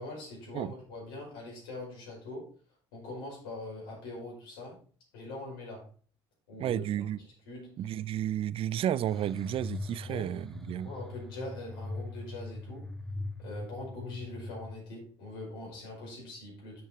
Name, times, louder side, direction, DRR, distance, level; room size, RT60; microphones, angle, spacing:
voice 1, 0.0-2.5 2.9-4.8 5.1-5.9 6.5-6.8 7.2-7.8 10.0-10.3 10.8-12.9 13.4-16.8, left 2 dB, 80° left, 5.2 m, -42 dB
voice 2, 6.6-7.2 7.8-10.9, right 11 dB, 50° right, 0.5 m, -32 dB
sound 1, 9.1-14.8, left 2 dB, 5° left, 1.6 m, -41 dB
7.8 x 7.2 x 4.4 m
hypercardioid pair, 60°, 12 cm